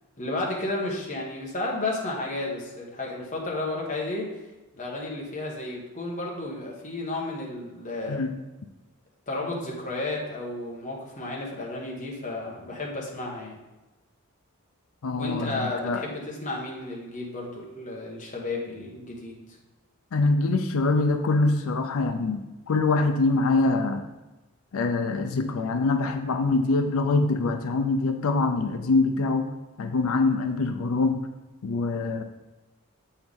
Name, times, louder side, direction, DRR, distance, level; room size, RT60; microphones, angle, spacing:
voice 1, 0.2-4.3 4.8-8.2 9.3-13.6 15.1-19.4, left 2 dB, 35° left, -2 dB, 1.2 m, -32 dB
voice 2, 15.0-16.0 20.1-24.1 24.7-29.5 29.8-31.2 31.6-32.2, left 3 dB, 75° left, 7 dB, 0.4 m, -24 dB
7.6 x 4.5 x 3.6 m, 1.1 s
head